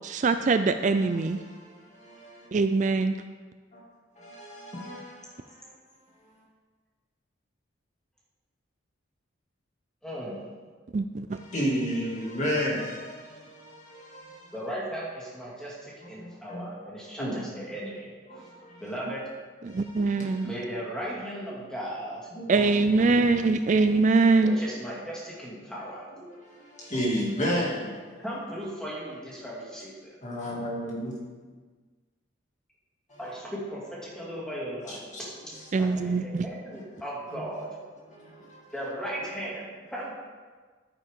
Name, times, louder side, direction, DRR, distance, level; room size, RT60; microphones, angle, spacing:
voice 1, 0.0-1.4 2.5-3.1 10.9-11.4 19.7-20.5 22.5-24.6 35.7-36.5, right 3 dB, 40° right, 9 dB, 0.3 m, -23 dB
voice 2, 0.8-2.5 3.7-3.8 4.2-5.7 6.2-6.4 11.3-14.6 16.2-16.7 17.0-17.4 18.3-18.9 19.7-20.5 22.3-22.5 24.0-24.2 25.8-28.2 30.2-31.3 33.1-33.2 34.9-35.7 36.6-36.7 37.3-37.4 38.0-38.8, equal, 35° left, -4 dB, 2.4 m, -34 dB
voice 3, 10.0-10.4 14.5-18.1 18.8-19.2 20.4-22.3 24.4-26.1 28.2-29.9 33.2-35.0 35.5-37.8 38.7-40.1, equal, 5° left, -6 dB, 2.3 m, -37 dB
11.0 x 9.4 x 3.7 m, 1.5 s
head